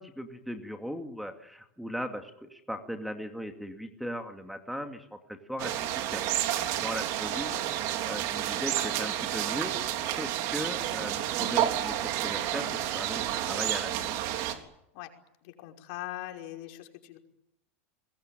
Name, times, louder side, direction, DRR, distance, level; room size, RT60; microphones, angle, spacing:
voice 1, 0.0-6.4 6.8-9.7 10.1-14.1, equal, ahead, 5 dB, 2.5 m, -38 dB
sound 1, 5.6-14.6, right 12 dB, 55° right, 3.7 m, -30 dB
voice 2, 15.4-17.2, left 15 dB, 60° left, 4 dB, 5.5 m, -41 dB
27.0 x 21.5 x 9.3 m, 0.79 s
supercardioid pair, 130°, 7 cm